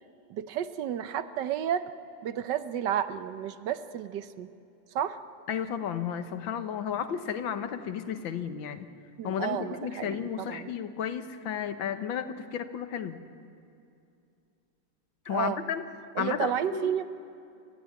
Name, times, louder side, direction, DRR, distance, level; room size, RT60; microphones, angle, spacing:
voice 1, 0.3-1.9 2.2-4.5 4.9-5.2 9.2-10.7 15.3-15.6 16.2-17.0, right 9 dB, 70° right, 12 dB, 1.4 m, -31 dB
voice 2, 5.5-8.9 9.2-13.2 15.3-15.8 16.2-16.9, left 8 dB, 85° left, 9 dB, 1.9 m, -33 dB
29.0 x 14.5 x 9.4 m, 2.6 s
omnidirectional pair, 2.1 m